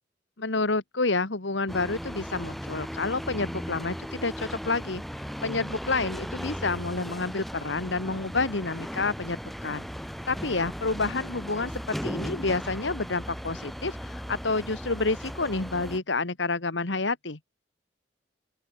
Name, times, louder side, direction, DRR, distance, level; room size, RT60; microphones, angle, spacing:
voice 1, 0.4-5.0 5.4-9.9 10.3-17.4, left 3 dB, 80° left, 1.7 m, -29 dB
sound 1, 1.7-16.0, equal, ahead, 1.7 m, -37 dB
open air
head